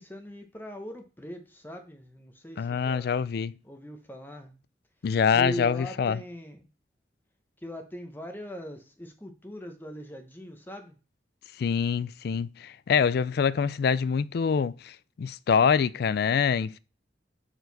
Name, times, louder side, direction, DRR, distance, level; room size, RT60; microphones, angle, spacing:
voice 1, 0.0-3.2 3.6-4.5 5.3-6.6 7.6-11.0 15.9-16.1, equal, 10° left, 0.8 m, -40 dB
voice 2, 2.6-3.5 5.0-6.2 11.6-16.8, left 6 dB, 60° left, 0.3 m, -25 dB
6.4 x 4.5 x 4.0 m
head